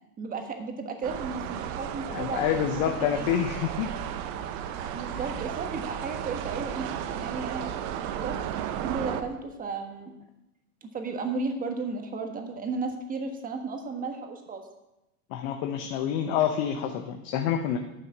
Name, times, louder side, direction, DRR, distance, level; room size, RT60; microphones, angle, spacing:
voice 1, 0.2-3.3 4.8-8.4 8.8-10.1 10.8-14.6, right 4 dB, 20° right, 5 dB, 1.4 m, -34 dB
sound 1, 1.0-9.2, right 9 dB, 40° right, 0.8 m, -34 dB
voice 2, 2.1-3.9 15.3-17.8, left 9 dB, 40° left, 5 dB, 0.8 m, -27 dB
10.0 x 7.1 x 5.9 m, 0.93 s
hypercardioid pair, 130°, 45 cm